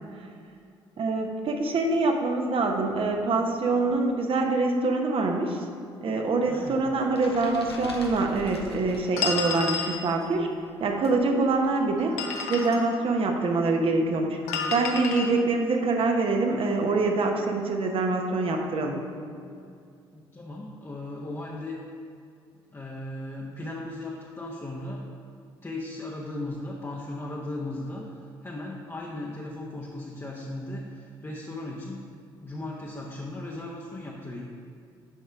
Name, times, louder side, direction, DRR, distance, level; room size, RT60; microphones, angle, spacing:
voice 1, 1.0-5.7 6.0-10.5 10.8-12.2 12.5-14.4 14.7-19.0, right 3 dB, 45° right, 3 dB, 1.0 m, -25 dB
sound 1, 6.3-9.6 9.9-11.8, left 1 dB, 90° left, 0.6 m, -44 dB
voice 2, 6.5-6.8 20.1-21.8 22.7-25.0 25.6-28.0 28.4-32.1 32.4-34.4, left 2 dB, 20° left, -3 dB, 1.0 m, -37 dB
sound 2, 9.2-10.0 12.0-12.8 14.5-15.3, left 5 dB, 65° left, 0.9 m, -30 dB
7.3 x 5.4 x 4.9 m, 2.3 s
figure-of-eight pair, 45°, 13 cm